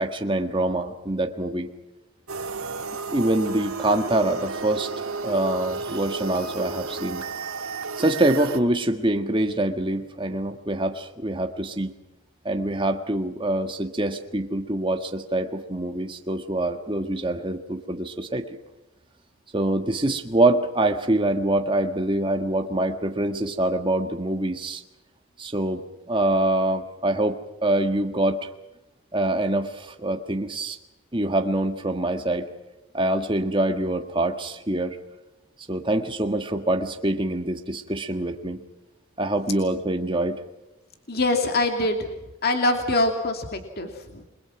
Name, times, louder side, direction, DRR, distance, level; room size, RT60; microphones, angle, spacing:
voice 1, 0.0-1.7 3.1-4.9 5.2-7.2 7.9-11.9 12.4-18.4 19.5-24.8 25.4-28.5 29.1-30.8 31.1-32.5 32.9-35.0 35.7-38.6 39.2-40.4, right 1 dB, 25° right, 5 dB, 1.6 m, -25 dB
sound 1, 2.3-8.6, right 4 dB, 85° right, 2.0 m, -32 dB
voice 2, 41.1-42.1 42.4-44.2, left 2 dB, 45° left, 4 dB, 2.6 m, -24 dB
29.0 x 22.5 x 6.0 m, 0.99 s
head